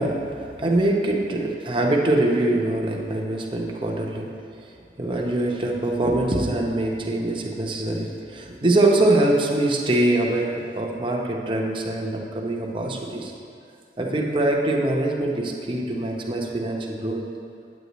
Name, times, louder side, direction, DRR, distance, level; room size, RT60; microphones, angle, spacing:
voice 1, 0.0-4.3 4.6-13.3 14.0-17.2, right 1 dB, 30° right, 0 dB, 0.7 m, -23 dB
8.8 x 8.0 x 3.0 m, 2.4 s
head